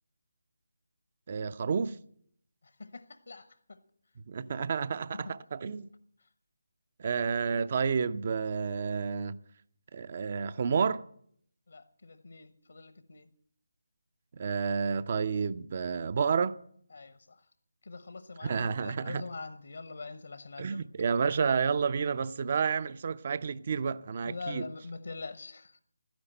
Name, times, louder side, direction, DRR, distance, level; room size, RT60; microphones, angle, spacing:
voice 1, 1.3-2.0 4.3-5.9 7.0-9.4 9.9-11.0 14.3-16.6 18.4-19.2 20.6-24.6, right 6 dB, 35° right, 0.5 m, -30 dB
voice 2, 2.8-3.8 5.1-5.3 11.7-13.3 16.9-17.4 17.8-20.8 24.2-25.8, left 3 dB, 60° left, 1.0 m, -44 dB
13.5 x 10.5 x 7.8 m
figure-of-eight pair, 155°, 0 cm